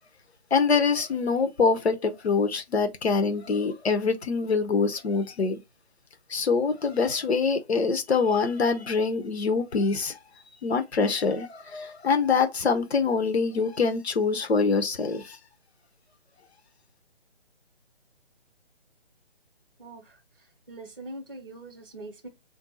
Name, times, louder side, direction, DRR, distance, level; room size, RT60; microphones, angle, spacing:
voice 1, 0.5-5.6 6.3-10.2 10.6-15.4, left 4 dB, 75° left, 0.8 m, -25 dB
voice 2, 19.8-22.3, right 2 dB, 20° right, 0.6 m, -43 dB
3.6 x 2.6 x 3.8 m
figure-of-eight pair, 145°, 32 cm